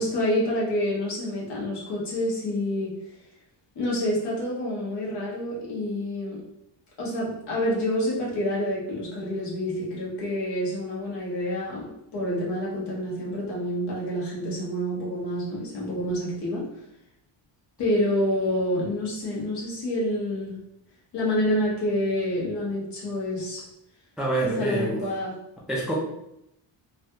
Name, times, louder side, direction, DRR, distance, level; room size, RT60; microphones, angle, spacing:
voice 1, 0.0-2.9 3.7-6.4 7.0-16.6 17.8-20.6 21.1-23.6 24.4-25.3, left 1 dB, 60° left, -6 dB, 1.4 m, -28 dB
voice 2, 24.2-25.0 25.7-25.9, right 2 dB, ahead, -4 dB, 0.4 m, -26 dB
3.2 x 2.4 x 2.7 m, 0.81 s
cardioid pair, 130°, 45 cm